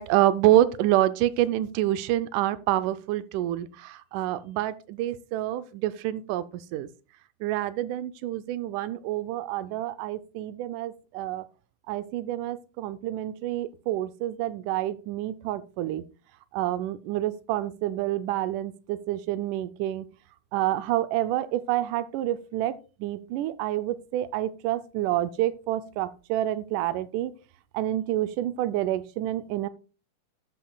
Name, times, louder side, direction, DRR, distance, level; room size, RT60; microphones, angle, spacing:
voice 1, 0.0-6.5 6.7-6.9 7.4-11.4 11.9-16.0 16.5-20.1 20.5-22.8 23.0-27.3 27.7-29.7, right 14 dB, 85° right, 2.1 m, -27 dB
12.5 x 8.3 x 2.2 m
omnidirectional pair, 3.5 m